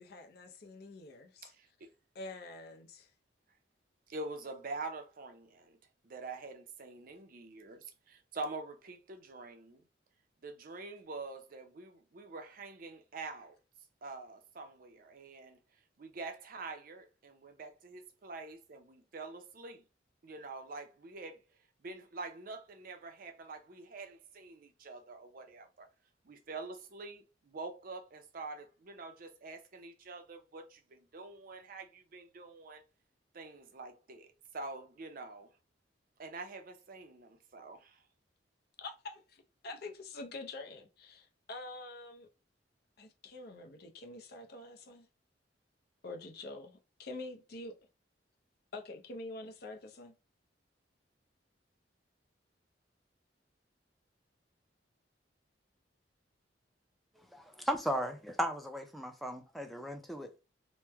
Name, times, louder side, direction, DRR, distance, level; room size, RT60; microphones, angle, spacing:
voice 1, 0.0-1.4 2.1-3.1 38.8-42.3 43.0-45.1 46.0-47.7 48.7-50.1, left 2 dB, 55° left, 0.5 m, -46 dB
voice 2, 1.4-1.9 4.1-5.8 6.0-9.8 10.4-13.6 14.0-15.6 16.0-19.8 20.2-21.4 21.8-25.9 26.2-32.8 33.3-35.6 36.2-38.0, right 3 dB, 50° right, 0.5 m, -46 dB
voice 3, 57.3-60.4, equal, ahead, 0.4 m, -36 dB
3.0 x 2.1 x 3.4 m
head